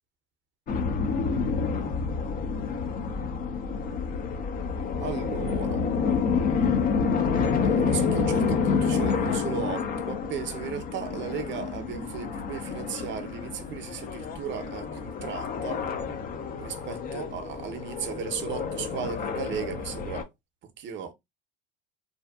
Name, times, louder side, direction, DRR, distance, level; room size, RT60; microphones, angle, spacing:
sound 1, 0.7-20.2, left 5 dB, 30° left, 0.5 m, -28 dB
voice 1, 5.0-5.8 7.6-15.8 16.6-20.3 20.8-21.1, right 8 dB, 40° right, 0.7 m, -36 dB
2.7 x 2.2 x 2.2 m
supercardioid pair, 110°, 30 cm